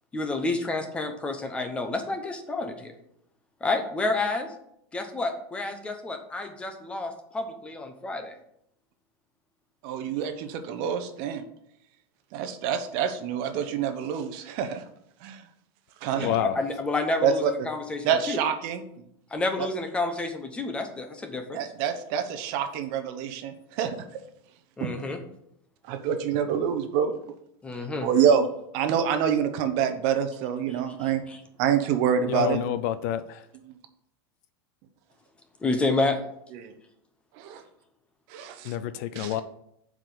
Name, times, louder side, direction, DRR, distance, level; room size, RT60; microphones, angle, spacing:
voice 1, 0.1-2.9 3.6-4.5 4.9-8.3 16.1-18.4 19.3-21.6 24.8-25.2 27.6-28.1 30.7-31.4 35.6-36.2, left 2 dB, 10° left, 6 dB, 0.8 m, -29 dB
voice 2, 9.8-11.4 12.3-14.8 15.2-15.4 16.0-16.4 17.2-17.7 18.0-18.8 19.6-19.7 21.5-24.0 24.8-24.9 25.9-27.1 28.0-28.5 28.7-31.2 31.6-32.6 36.5-36.7 37.4-37.6 38.3-38.7 39.2-39.4, right 8 dB, 40° right, 8 dB, 0.9 m, -26 dB
voice 3, 16.2-16.6 32.3-33.4 38.6-39.4, left 11 dB, 45° left, 13 dB, 0.5 m, -28 dB
7.5 x 4.9 x 6.8 m, 0.75 s
supercardioid pair, 170°, 13 cm